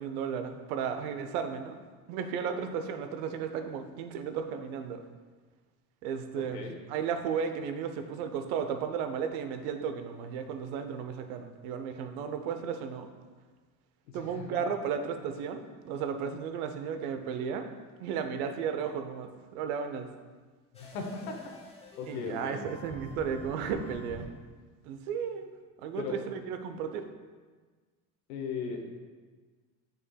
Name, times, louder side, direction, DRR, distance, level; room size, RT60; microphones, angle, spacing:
voice 1, 0.0-1.8 2.1-5.0 6.0-13.1 14.1-17.7 18.0-20.1 22.1-24.3 24.9-25.5 25.8-27.0, right 7 dB, 75° right, 7 dB, 0.8 m, -34 dB
voice 2, 14.1-14.6 20.7-21.4 22.0-22.6 26.0-26.2 28.3-29.0, left 5 dB, 80° left, 2 dB, 0.9 m, -37 dB
sound 1, 20.7-24.3, left 2 dB, 15° left, 1.2 m, -48 dB
8.4 x 5.3 x 2.3 m, 1.4 s
hypercardioid pair, 70°, 44 cm